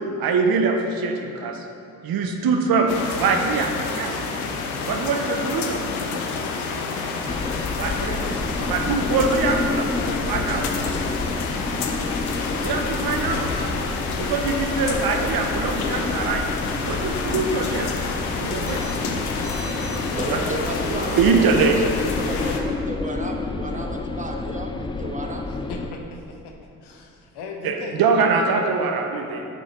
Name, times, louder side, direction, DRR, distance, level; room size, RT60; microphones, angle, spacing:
voice 1, 0.2-1.6 2.0-4.2 4.8-5.8 7.8-8.3 8.6-10.7 12.6-13.5 14.2-16.5 16.8-17.9 18.4-18.9 20.3-20.5 20.9-21.8 27.6-29.5, right 4 dB, 55° right, 4 dB, 0.9 m, -23 dB
sound 1, 2.9-22.6, left 4 dB, 85° left, 0.7 m, -28 dB
sound 2, 7.3-25.9, left 3 dB, 10° left, 0.3 m, -30 dB
voice 2, 18.7-21.9 22.2-25.4, right 1 dB, 15° right, 1 dB, 1.2 m, -34 dB
voice 3, 25.5-26.5 26.8-28.0, left 4 dB, 65° left, 1 dB, 1.0 m, -38 dB
8.4 x 5.3 x 4.2 m, 2.7 s
hypercardioid pair, 40°, 43 cm